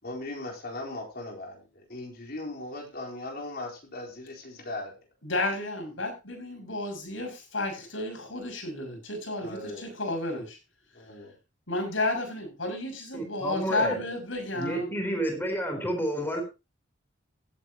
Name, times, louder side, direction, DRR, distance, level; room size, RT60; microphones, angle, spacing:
voice 1, 0.0-4.9 9.4-9.9 10.9-11.3, left 2 dB, 55° left, 4.2 m, -38 dB
voice 2, 5.2-10.6 11.7-14.9, left 2 dB, 90° left, 6.5 m, -32 dB
voice 3, 13.1-14.0 14.5-16.4, right 1 dB, 10° left, 3.9 m, -30 dB
16.5 x 9.1 x 3.0 m
head